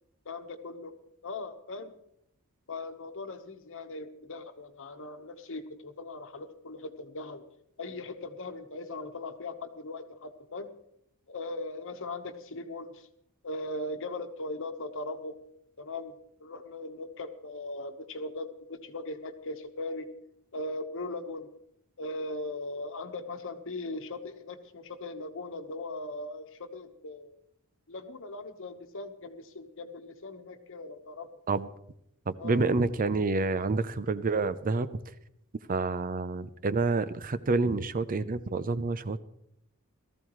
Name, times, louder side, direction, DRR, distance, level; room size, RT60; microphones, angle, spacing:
voice 1, 0.2-0.9 1.2-1.9 2.7-7.4 7.8-10.7 11.3-13.1 13.4-15.4 15.8-20.1 20.5-21.5 22.0-27.3 27.9-31.3 32.4-32.7, left 2 dB, 60° left, 8 dB, 1.2 m, -39 dB
voice 2, 32.3-34.9 35.7-39.2, right 3 dB, 40° right, 14 dB, 0.6 m, -28 dB
18.5 x 14.0 x 3.1 m, 0.76 s
head